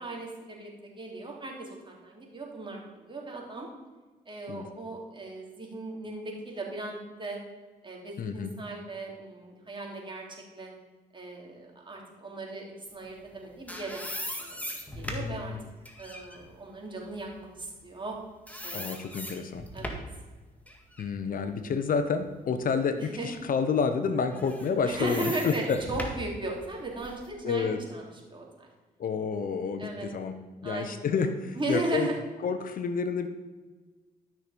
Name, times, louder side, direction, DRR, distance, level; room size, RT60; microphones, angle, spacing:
voice 1, 0.0-3.7 4.3-7.4 7.8-10.2 10.5-10.7 11.1-12.6 12.9-14.0 14.4-15.5 16.0-18.1 18.6-18.9 19.7-20.0 23.0-23.3 24.8-28.0 28.3-28.7 29.8-30.1 30.6-31.1 31.5-32.2, right 2 dB, 30° right, -1 dB, 3.6 m, -37 dB
voice 2, 8.2-8.5 15.1-15.7 18.7-19.6 21.0-25.8 27.4-27.8 29.0-30.3 30.6-32.1 32.4-33.3, left 5 dB, 60° left, 9 dB, 1.0 m, -29 dB
sound 1, 13.2-18.2 18.5-20.2 20.7-22.6 23.1-23.2 24.3-27.3, equal, 10° left, 2.0 m, -40 dB
13.0 x 6.3 x 5.2 m, 1.3 s
cardioid pair, 70°, 16 cm